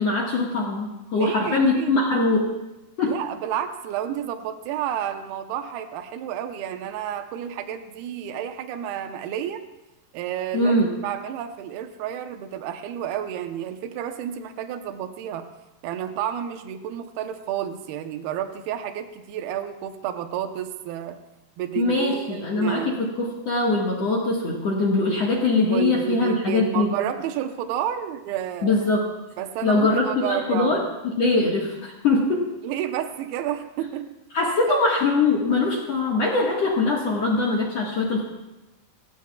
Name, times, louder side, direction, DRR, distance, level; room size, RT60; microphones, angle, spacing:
voice 1, 0.0-2.5 3.0-3.2 10.5-10.9 21.8-26.9 28.6-29.1 29.6-32.5 34.3-38.2, left 3 dB, 50° left, -3 dB, 2.0 m, -22 dB
voice 2, 1.1-2.0 3.0-9.6 10.1-10.7 11.0-15.5 15.8-21.2 21.6-23.0 25.7-28.8 29.4-30.9 32.6-34.2 34.6-34.8, right 10 dB, 75° right, 6 dB, 2.8 m, -30 dB
25.5 x 16.0 x 2.4 m, 1.0 s
omnidirectional pair, 4.9 m